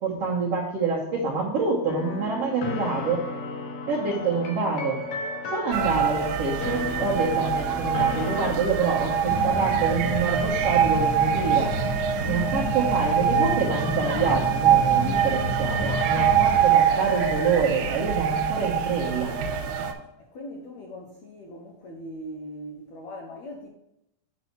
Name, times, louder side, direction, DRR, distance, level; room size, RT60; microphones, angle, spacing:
voice 1, 0.0-3.2 3.9-5.0 5.5-11.7 12.2-19.3, right 4 dB, 60° right, -5 dB, 1.6 m, -27 dB
sound 1, 1.9-8.6, left 3 dB, 85° left, 1.6 m, -34 dB
sound 2, 5.7-19.9, right 8 dB, 85° right, 2.8 m, -24 dB
sound 3, 9.2-16.6, left 2 dB, 50° left, 2.3 m, -31 dB
voice 2, 20.3-23.7, equal, 70° left, -1 dB, 1.7 m, -40 dB
8.8 x 4.2 x 5.9 m, 0.83 s
omnidirectional pair, 4.6 m